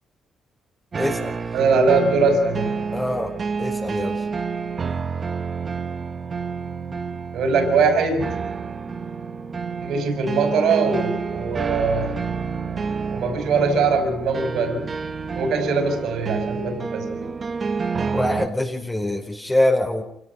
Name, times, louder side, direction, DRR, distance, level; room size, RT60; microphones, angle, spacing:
sound 1, 0.9-18.5, right 5 dB, 40° right, 1.5 m, -29 dB
voice 1, 1.0-1.3 2.9-3.3 3.6-4.2 18.1-20.0, left 1 dB, 15° left, 2 dB, 4.5 m, -24 dB
voice 2, 1.5-2.8 7.3-8.4 9.8-12.2 13.1-14.9 15.3-17.2, right 4 dB, 75° right, 6 dB, 6.1 m, -21 dB
27.0 x 18.0 x 5.6 m, 0.76 s
cardioid pair, 90°, 0 cm